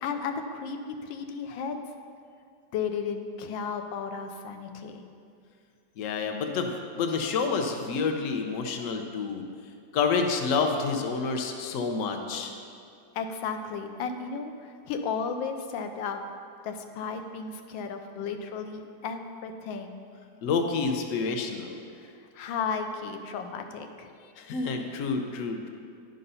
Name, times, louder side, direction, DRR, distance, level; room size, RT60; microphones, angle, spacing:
voice 1, 0.0-1.8 2.7-5.0 13.1-16.2 16.6-20.0 21.9-24.1, left 5 dB, 90° left, 6 dB, 1.4 m, -34 dB
voice 2, 6.0-9.4 9.9-12.5 20.4-21.7 24.4-25.7, left 4 dB, 60° left, 4 dB, 0.8 m, -28 dB
10.5 x 3.9 x 5.5 m, 2.3 s
omnidirectional pair, 2.0 m